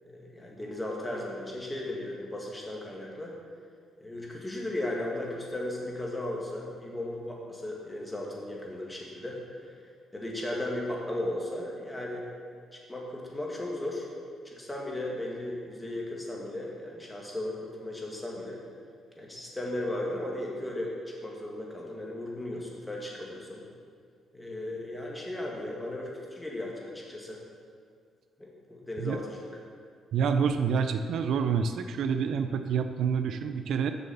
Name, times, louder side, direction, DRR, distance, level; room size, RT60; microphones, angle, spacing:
voice 1, 0.0-3.3 4.0-9.7 10.1-12.3 12.7-14.1 14.4-18.6 19.2-23.7 24.3-27.4 28.4-29.5, left 1 dB, 10° left, -2 dB, 2.1 m, -36 dB
voice 2, 30.1-33.9, right 6 dB, 70° right, 8 dB, 0.5 m, -27 dB
7.1 x 7.0 x 7.1 m, 2.1 s
cardioid pair, 90°, 0 cm